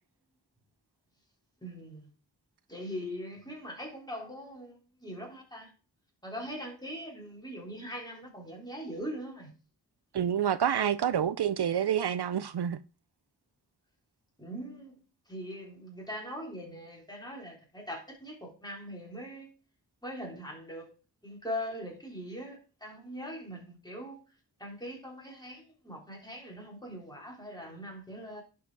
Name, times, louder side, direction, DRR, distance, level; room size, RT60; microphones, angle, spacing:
voice 1, 1.6-2.1 2.7-5.7 6.2-9.5 14.4-14.9 15.3-19.5 20.0-20.9 21.2-24.2 24.6-28.4, equal, 10° left, 3.4 m, -41 dB
voice 2, 10.1-12.8, right 9 dB, 75° right, 0.5 m, -28 dB
11.0 x 4.8 x 4.7 m
wide cardioid pair, 60°, 40 cm